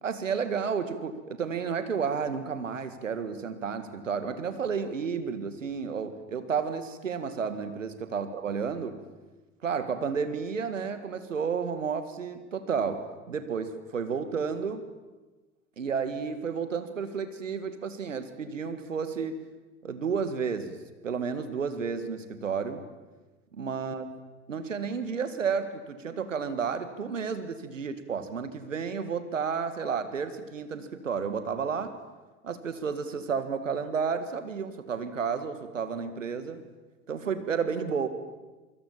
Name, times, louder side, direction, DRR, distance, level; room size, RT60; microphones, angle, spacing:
voice 1, 0.0-9.0 9.6-14.9 15.8-19.4 19.8-20.8 21.0-22.8 23.5-24.1 24.5-32.0 32.4-36.6 37.1-38.1, right 6 dB, 90° right, 10 dB, 2.0 m, -31 dB
27.0 x 24.5 x 7.4 m, 1.2 s
hypercardioid pair, 70°, 37 cm